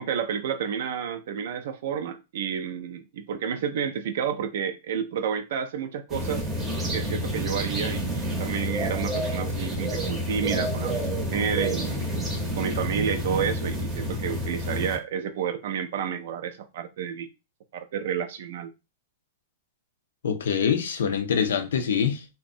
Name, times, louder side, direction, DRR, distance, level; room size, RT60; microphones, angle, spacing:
voice 1, 0.0-6.4 6.9-12.0 12.6-17.3 17.7-18.7, right 7 dB, 65° right, 0.3 m, -30 dB
Arizona Air, 6.1-15.0, right 1 dB, 10° right, 0.7 m, -29 dB
voice 2, 20.2-22.3, left 7 dB, 85° left, 0.5 m, -25 dB
2.6 x 2.1 x 2.5 m
hypercardioid pair, 145°, 0 cm